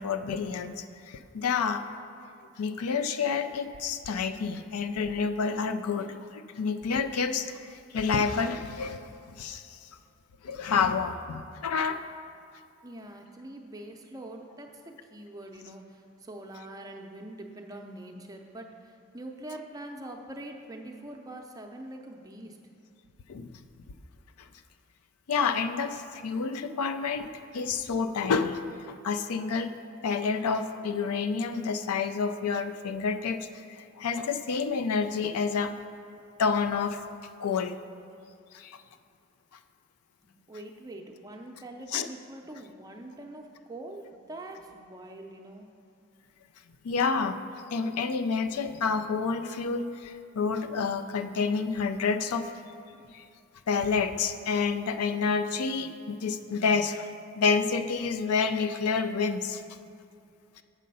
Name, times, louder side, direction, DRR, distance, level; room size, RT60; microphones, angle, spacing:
voice 1, 0.0-1.8 2.6-7.5 7.9-9.0 9.4-9.6 10.4-12.0 23.3-23.5 25.3-28.6 28.9-29.7 30.0-35.7 36.4-37.0 37.4-37.8 38.5-38.8 41.9-42.1 46.8-47.4 47.7-52.5 53.1-53.2 53.7-59.6, left 5 dB, 90° left, 9 dB, 0.4 m, -29 dB
voice 2, 12.8-22.6 38.0-38.1 40.2-45.7, right 1 dB, 15° right, 2 dB, 0.5 m, -44 dB
7.4 x 6.5 x 5.4 m, 2.4 s
head